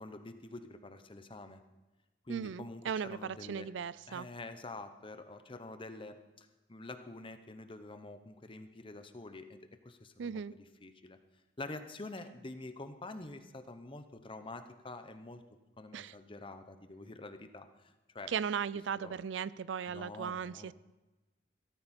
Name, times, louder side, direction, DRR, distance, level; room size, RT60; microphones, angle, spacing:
voice 1, 0.0-1.6 2.2-3.7 4.1-10.4 10.8-11.2 11.6-15.4 15.8-18.3 19.0-19.2 19.9-20.7, left 2 dB, 30° left, 9 dB, 0.9 m, -47 dB
voice 2, 2.3-4.3 10.2-10.5 15.9-16.2 18.3-20.7, right 7 dB, 85° right, 19 dB, 0.4 m, -37 dB
16.0 x 14.0 x 4.4 m, 1.1 s
head